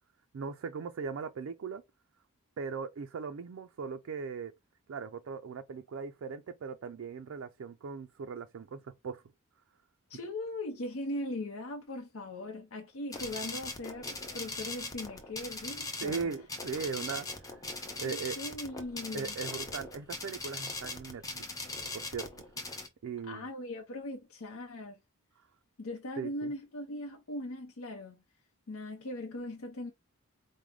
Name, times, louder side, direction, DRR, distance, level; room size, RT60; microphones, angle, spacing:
voice 1, 0.3-1.8 2.6-4.5 4.9-9.2 16.0-17.6 18.0-18.4 19.1-21.4 21.9-22.3 23.0-23.5 26.2-26.5, right 5 dB, 60° right, 0.3 m, -39 dB
voice 2, 10.1-16.3 18.0-19.3 23.2-25.0 25.8-28.2 28.7-29.9, left 1 dB, 70° left, 0.7 m, -39 dB
sound 1, 13.1-22.9, left 2 dB, 15° left, 0.7 m, -40 dB
4.7 x 2.1 x 3.6 m
head